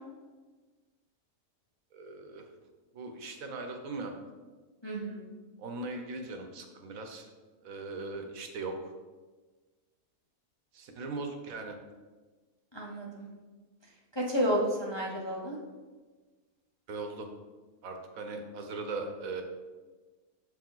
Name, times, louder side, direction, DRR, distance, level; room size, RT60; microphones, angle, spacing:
voice 1, 1.9-2.5 2.9-4.1 5.6-7.3 7.6-8.9 10.7-11.8 16.9-17.3 17.8-19.4, right 3 dB, 70° right, 4 dB, 1.2 m, -39 dB
voice 2, 4.8-5.3 12.7-13.3 14.2-15.6, equal, 25° left, -2 dB, 0.6 m, -31 dB
7.3 x 4.7 x 3.9 m, 1.3 s
omnidirectional pair, 1.6 m